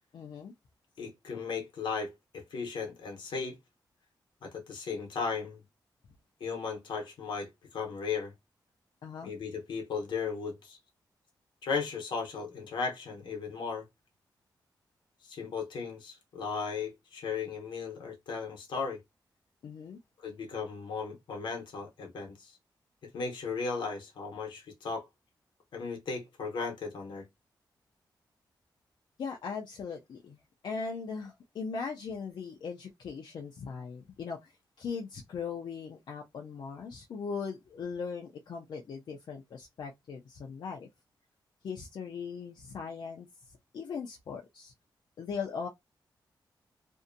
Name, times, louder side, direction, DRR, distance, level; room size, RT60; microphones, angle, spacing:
voice 1, 0.1-0.5 9.0-9.3 19.6-20.0 29.2-30.4 30.6-34.5 34.8-40.9 41.6-43.3 43.7-44.7 45.2-45.7, left 5 dB, 70° left, 0.4 m, -39 dB
voice 2, 1.0-3.6 4.4-5.6 6.4-8.3 9.2-10.8 11.6-13.9 15.2-19.0 20.2-22.6 23.1-25.1 25.7-27.3, left 5 dB, 90° left, 0.9 m, -36 dB
2.6 x 2.1 x 2.5 m
wide cardioid pair, 130°, 8 cm